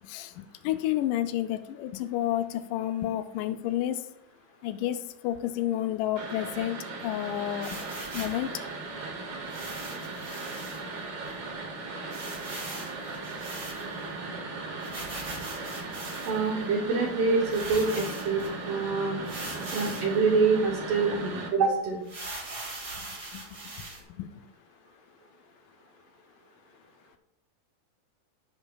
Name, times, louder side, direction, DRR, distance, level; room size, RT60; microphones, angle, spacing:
voice 1, 0.1-4.0 4.6-5.0 5.2-7.8 8.1-8.5 23.3-23.4 24.2-24.3, left 12 dB, 90° left, 9 dB, 1.8 m, -30 dB
sound 1, 6.2-21.5, right 3 dB, 60° right, 2.7 m, -38 dB
sound 2, 7.6-8.4 9.5-10.8 11.3-11.4 11.6-11.7 12.1-14.1 14.8-16.5 17.1-17.2 17.5-18.5 19.2-20.1 20.7-20.8 21.1-21.2 22.0-24.0, right 2 dB, 35° right, 1.6 m, -40 dB
voice 2, 16.2-19.2 19.7-22.0, right 4 dB, 85° right, -1 dB, 1.4 m, -26 dB
16.0 x 5.5 x 2.3 m, 0.78 s
omnidirectional pair, 4.3 m